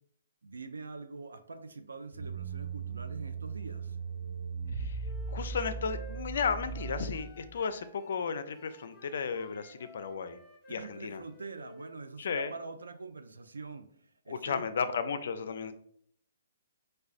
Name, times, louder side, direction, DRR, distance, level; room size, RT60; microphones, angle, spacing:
voice 1, 0.4-4.0 10.7-14.6, right 3 dB, 85° right, 8 dB, 0.4 m, -44 dB
sound 1, 2.1-7.6, right 5 dB, 45° right, 1.3 m, -38 dB
Wind instrument woodwind instrument, 5.0-8.2 8.5-11.9, right 1 dB, 5° left, 0.7 m, -54 dB
voice 2, 5.3-10.4 10.7-11.2 12.2-12.5 14.3-15.7, left 6 dB, 65° left, 11 dB, 0.4 m, -34 dB
4.7 x 2.2 x 2.5 m, 0.63 s
hypercardioid pair, 135°, 0 cm